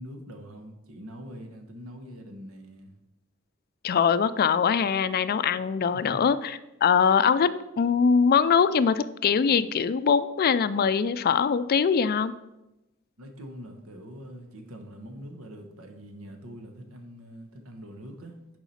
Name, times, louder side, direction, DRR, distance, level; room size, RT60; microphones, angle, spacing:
voice 1, 0.0-2.9 5.9-6.2 13.2-18.4, equal, 80° right, 5 dB, 1.2 m, -43 dB
voice 2, 3.8-7.5 7.8-12.3, left 6 dB, 45° left, 14 dB, 0.3 m, -22 dB
7.1 x 4.8 x 5.7 m, 0.95 s
head